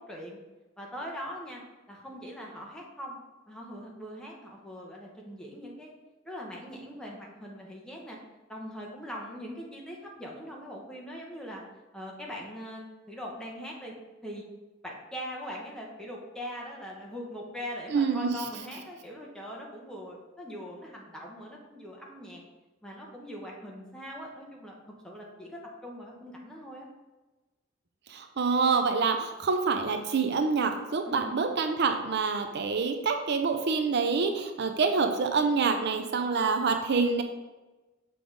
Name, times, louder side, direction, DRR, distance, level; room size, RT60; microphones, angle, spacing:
voice 1, 0.1-0.4 0.8-1.6 1.9-3.2 3.5-5.9 6.2-8.2 8.5-11.6 11.9-13.9 14.2-14.4 14.8-22.4 22.8-24.7 25.0-26.9 31.0-31.4, equal, 5° left, -2 dB, 1.2 m, -41 dB
voice 2, 17.9-18.3 28.1-37.2, right 4 dB, 60° right, 6 dB, 0.5 m, -26 dB
6.9 x 5.0 x 3.8 m, 1.1 s
head